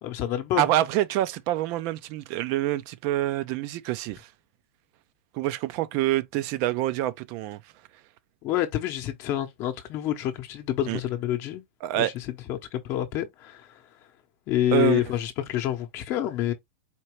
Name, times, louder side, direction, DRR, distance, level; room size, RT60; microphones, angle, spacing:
voice 1, 0.0-0.6 8.4-11.6 11.9-12.2 12.5-13.7 14.5-16.5, left 12 dB, 40° left, 0.9 m, -28 dB
voice 2, 0.6-4.3 5.3-7.6 10.9-11.0 11.8-12.1 14.7-15.0, right 14 dB, 45° right, 0.6 m, -26 dB
4.4 x 2.8 x 3.2 m
hypercardioid pair, 120°, 7 cm